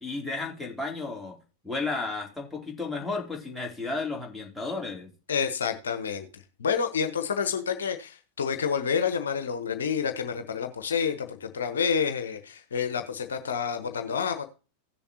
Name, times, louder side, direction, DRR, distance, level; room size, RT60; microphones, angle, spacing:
voice 1, 0.0-1.4 1.6-5.1, left 3 dB, 5° left, -1 dB, 3.0 m, -33 dB
voice 2, 5.3-6.3 6.6-14.5, left 6 dB, 65° left, 7 dB, 1.1 m, -29 dB
16.5 x 7.0 x 2.9 m, 0.33 s
figure-of-eight pair, 90°, 0 cm